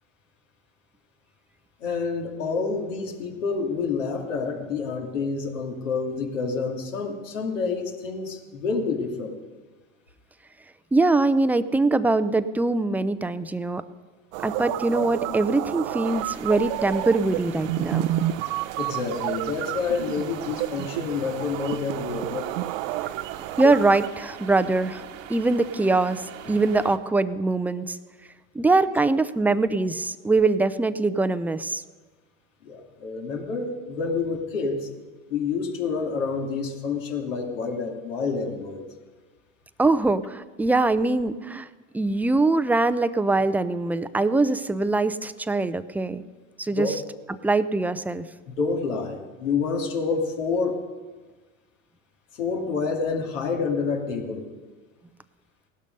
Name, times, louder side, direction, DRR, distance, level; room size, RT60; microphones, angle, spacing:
voice 1, 1.8-9.4 18.8-22.5 26.5-26.6 32.6-34.9 35.3-38.8 46.7-46.9 48.5-50.8 52.3-54.5, left 4 dB, 80° left, 1 dB, 2.7 m, -28 dB
voice 2, 10.9-13.8 14.4-18.1 23.6-25.0 25.3-28.0 28.5-31.8 39.8-41.7 41.9-46.2 46.6-47.0 47.4-48.3, right 3 dB, 5° right, 13 dB, 0.5 m, -23 dB
sound 1, 14.3-24.1, right 14 dB, 55° right, 0.7 m, -30 dB
sound 2, 16.0-27.0, right 9 dB, 80° right, 1.6 m, -42 dB
17.0 x 12.0 x 5.4 m, 1.3 s
hypercardioid pair, 90°, 38 cm